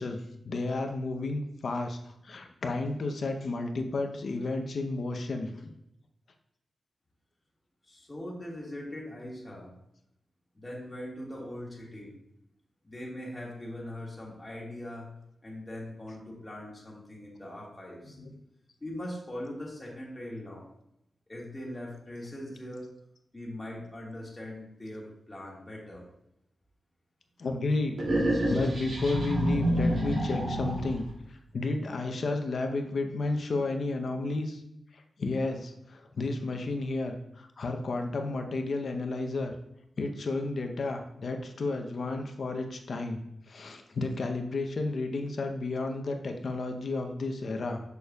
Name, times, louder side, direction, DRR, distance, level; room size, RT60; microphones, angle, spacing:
voice 1, 0.0-5.7 18.1-18.4 22.5-22.6 27.4-28.0 28.5-34.6 34.9-39.5 40.0-47.8, left 2 dB, 60° left, 5 dB, 0.7 m, -32 dB
voice 2, 7.8-9.7 10.5-12.2 12.8-15.1 15.4-18.2 18.8-20.7 21.3-22.9 23.3-26.1, left 1 dB, 20° left, -4 dB, 1.7 m, -41 dB
sound 1, 28.0-31.1, right 1 dB, 70° right, 2.5 m, -28 dB
6.7 x 6.5 x 2.3 m, 0.80 s
wide cardioid pair, 150°, 0 cm